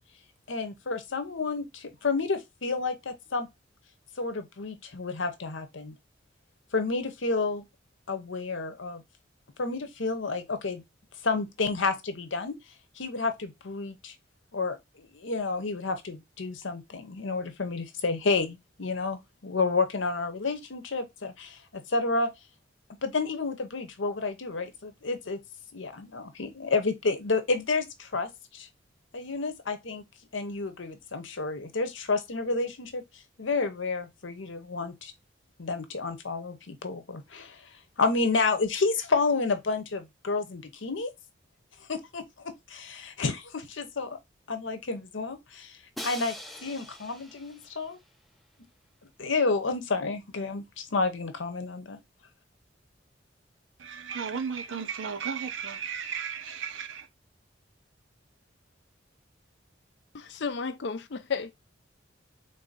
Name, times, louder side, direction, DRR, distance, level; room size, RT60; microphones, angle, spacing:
voice 1, 0.5-3.5 4.2-5.9 6.7-7.6 8.1-9.0 9.6-10.8 11.2-12.6 13.0-14.1 14.5-22.3 23.0-25.4 25.7-28.7 29.1-30.0 30.3-33.0 33.4-35.1 35.6-37.6 38.0-41.1 41.9-44.2 44.5-45.8 46.0-46.3 46.6-48.0 49.2-52.0, left 3 dB, 85° left, 0.8 m, -30 dB
Crash cymbal, 46.0-48.0, equal, ahead, 0.4 m, -42 dB
voice 2, 53.8-57.1, right 6 dB, 85° right, 0.7 m, -34 dB
voice 3, 60.1-61.6, left 5 dB, 65° left, 0.5 m, -33 dB
3.8 x 2.7 x 3.9 m
head